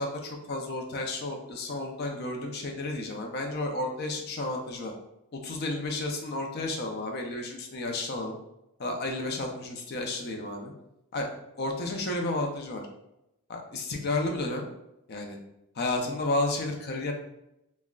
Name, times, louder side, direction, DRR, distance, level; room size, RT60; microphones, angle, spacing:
voice 1, 0.0-4.9 5.4-8.3 8.8-10.7 11.1-11.3 11.6-12.8 13.5-14.7 15.1-15.4 15.8-17.1, left 2 dB, 45° left, 2 dB, 0.4 m, -32 dB
3.6 x 2.1 x 2.2 m, 0.85 s
head